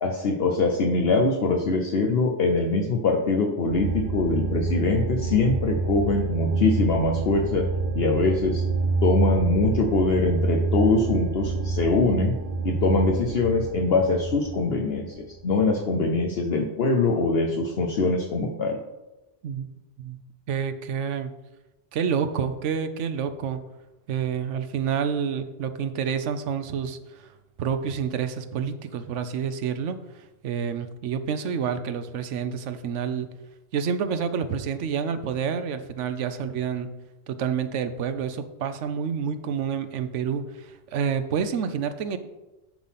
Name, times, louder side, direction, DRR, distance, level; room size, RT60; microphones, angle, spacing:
voice 1, 0.0-7.6 8.0-8.6 9.0-12.4 12.6-18.8, left 3 dB, 60° left, 1 dB, 1.0 m, -23 dB
sound 1, 3.7-15.6, right 4 dB, 60° right, 1.0 m, -27 dB
voice 2, 20.5-21.3 21.9-23.6 24.1-27.3 27.6-30.0 30.4-33.3 33.7-36.9 37.3-42.2, right 7 dB, 85° right, 10 dB, 1.0 m, -28 dB
10.0 x 3.9 x 5.7 m, 1.0 s
omnidirectional pair, 1.2 m